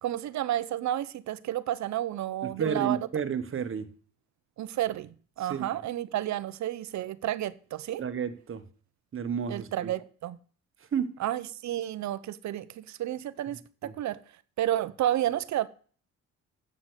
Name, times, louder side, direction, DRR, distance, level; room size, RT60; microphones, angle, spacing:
voice 1, 0.0-3.1 4.6-5.1 5.4-8.0 9.5-10.4 11.2-14.2 14.6-15.7, right 12 dB, 65° right, 0.8 m, -31 dB
voice 2, 2.6-3.9 5.5-5.7 8.0-8.6 9.1-9.9 10.9-11.1 13.8-13.9, right 7 dB, 45° right, 1.4 m, -31 dB
7.8 x 7.4 x 8.1 m
cardioid pair, 90°, 30 cm